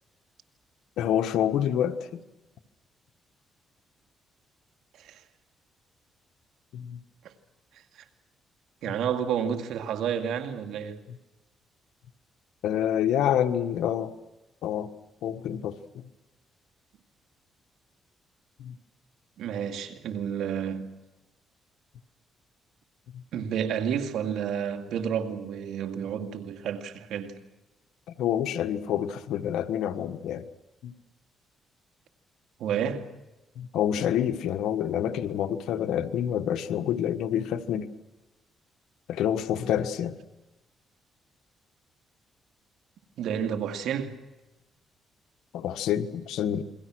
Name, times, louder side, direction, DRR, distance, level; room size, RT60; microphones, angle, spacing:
voice 1, 1.0-2.2 6.7-7.0 11.1-11.2 12.6-14.1 14.6-14.9 15.2-16.0 18.6-18.8 23.1-23.2 28.2-30.4 30.8-30.9 33.6-37.9 39.1-40.1 45.5-46.6, left 10 dB, 85° left, 1.4 m, -27 dB
voice 2, 8.8-11.0 19.4-20.9 23.3-27.4 32.6-33.1 43.2-44.2, right 8 dB, 80° right, 2.4 m, -30 dB
28.5 x 23.0 x 6.3 m
cardioid pair, 90°, 0 cm